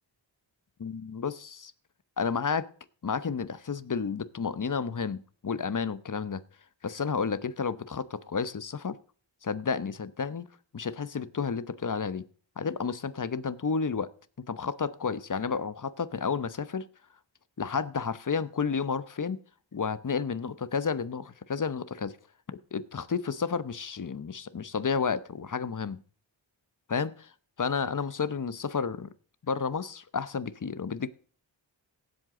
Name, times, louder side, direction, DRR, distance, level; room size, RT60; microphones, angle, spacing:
voice 1, 0.8-1.7 2.2-2.7 3.0-6.4 6.8-9.0 9.4-10.5 10.7-12.2 12.6-14.1 14.5-16.8 17.6-19.4 19.7-22.1 22.7-26.0 26.9-27.3 27.6-29.1 29.4-31.1, left 5 dB, 40° left, 0.9 m, -31 dB
17.0 x 8.0 x 3.8 m
wide cardioid pair, 75°, 46 cm